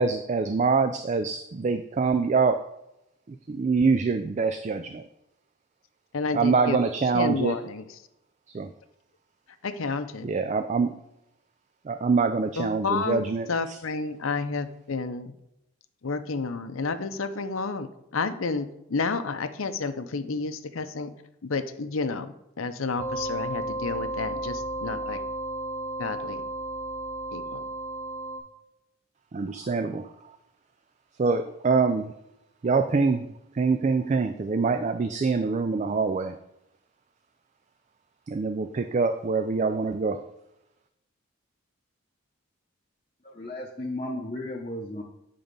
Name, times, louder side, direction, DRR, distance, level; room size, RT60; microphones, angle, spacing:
voice 1, 0.0-2.6 3.3-5.0 6.3-7.6 8.5-8.7 10.2-11.0 11.8-13.5 29.3-30.1 31.2-32.1 32.6-33.3 33.5-36.4 38.3-40.2, right 4 dB, 35° right, 8 dB, 0.3 m, -25 dB
voice 2, 6.1-6.8 7.1-7.9 9.6-10.3 12.6-13.2 13.5-15.3 16.0-21.1 21.4-25.2 26.0-26.4 27.3-27.6, left 4 dB, 80° left, 10 dB, 0.7 m, -30 dB
sound 1, 23.0-28.4, right 1 dB, 10° right, 3.0 m, -33 dB
voice 3, 43.4-45.0, left 1 dB, 25° left, -4 dB, 0.8 m, -34 dB
8.9 x 3.8 x 5.3 m, 0.86 s
head